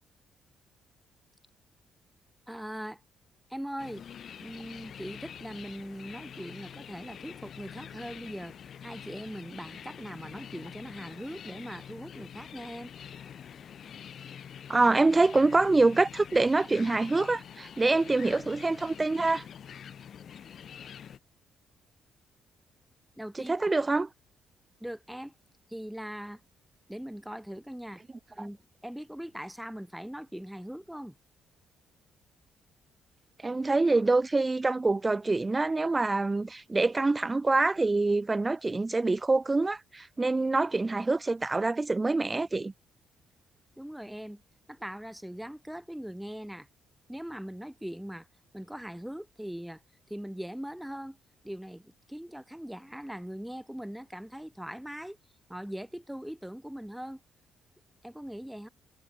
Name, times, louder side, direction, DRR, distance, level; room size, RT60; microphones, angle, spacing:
voice 1, 2.5-3.0 3.5-4.0 4.4-8.5 8.8-12.9 23.2-23.7 24.8-25.3 25.7-26.4 26.9-28.0 28.4-31.1 43.8-44.4 44.7-46.7 47.1-48.3 48.5-49.8 50.1-51.2 51.4-55.2 55.5-57.2 58.0-58.7, equal, 5° right, 1.3 m, -40 dB
sound 1, 3.8-21.2, left 8 dB, 60° left, 0.6 m, -46 dB
voice 2, 14.7-19.4 23.4-24.1 33.4-42.7, right 3 dB, 20° right, 0.6 m, -25 dB
cardioid pair, 90°, 0 cm